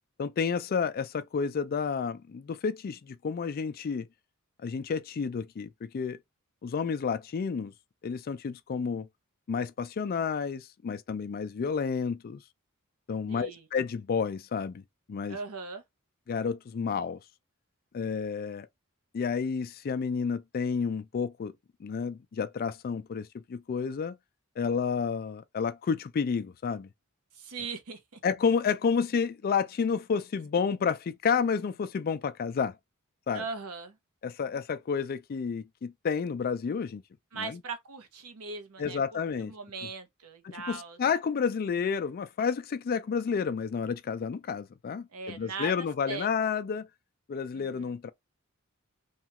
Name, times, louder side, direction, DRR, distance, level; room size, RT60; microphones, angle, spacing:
voice 1, 0.2-4.1 4.6-6.2 6.6-7.7 8.0-9.1 9.5-12.4 13.1-14.8 15.1-15.4 16.3-17.2 17.9-18.7 19.1-21.5 21.8-24.2 24.6-26.9 28.2-32.7 33.3-33.4 34.2-37.0 37.3-37.6 38.8-39.5 39.8-39.9 40.4-46.9 47.3-48.1, left 6 dB, 45° left, 0.3 m, -30 dB
voice 2, 13.3-13.6 15.3-15.8 27.4-28.2 33.3-34.0 37.3-39.2 39.5-41.0 45.1-46.3 47.5-47.9, right 4 dB, 85° right, 0.7 m, -39 dB
3.0 x 2.3 x 2.8 m
head